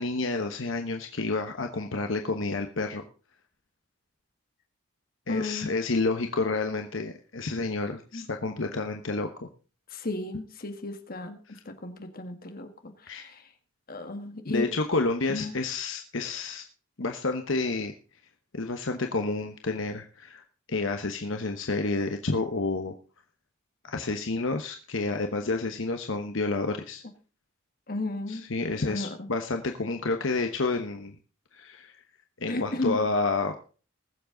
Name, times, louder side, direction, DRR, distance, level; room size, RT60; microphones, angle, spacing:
voice 1, 0.0-3.0 5.3-9.5 13.1-13.3 14.5-16.6 17.0-17.9 18.5-20.4 20.7-22.9 23.8-27.0 28.3-31.2 31.5-32.0 32.4-33.6, left 3 dB, 70° left, 5 dB, 1.1 m, -29 dB
voice 2, 5.3-5.7 8.1-8.3 9.9-11.4 11.6-13.5 13.9-14.7 15.3-15.5 27.9-28.4 28.8-29.3 32.5-33.0, left 2 dB, 45° left, 6 dB, 1.8 m, -34 dB
20.5 x 7.3 x 3.9 m, 0.37 s
head